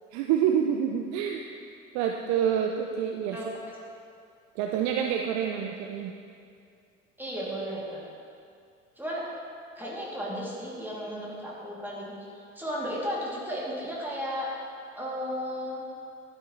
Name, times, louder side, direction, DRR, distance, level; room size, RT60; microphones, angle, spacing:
voice 1, 0.1-1.4 1.9-3.4 4.6-6.1, right 8 dB, 45° right, 3 dB, 0.7 m, -27 dB
voice 2, 7.2-8.1 9.0-9.2 9.8-12.1 12.5-14.5 15.0-15.8, equal, 5° right, -6 dB, 2.8 m, -34 dB
12.0 x 9.9 x 3.2 m, 2.4 s
figure-of-eight pair, 65°, 38 cm